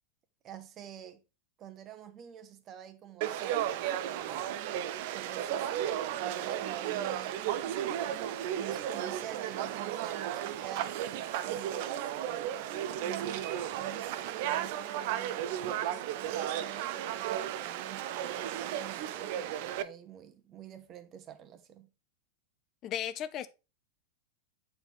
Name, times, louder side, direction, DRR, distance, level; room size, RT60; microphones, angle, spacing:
voice 1, 0.4-1.2 1.6-4.6 5.1-7.6 8.4-21.9, right 10 dB, 30° right, 0.9 m, -48 dB
Conversation / Crowd, 3.2-19.8, right 11 dB, 50° right, 0.5 m, -34 dB
voice 2, 22.8-23.5, left 10 dB, 35° left, 0.5 m, -35 dB
8.0 x 4.3 x 4.0 m
figure-of-eight pair, 90°, 0 cm